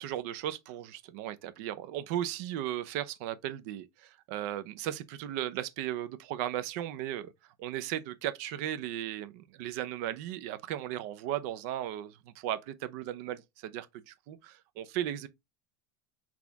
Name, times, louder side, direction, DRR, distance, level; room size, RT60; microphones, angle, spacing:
voice 1, 0.0-15.3, right 12 dB, 60° right, 0.5 m, -36 dB
4.1 x 2.9 x 3.4 m
supercardioid pair, 155°, 10 cm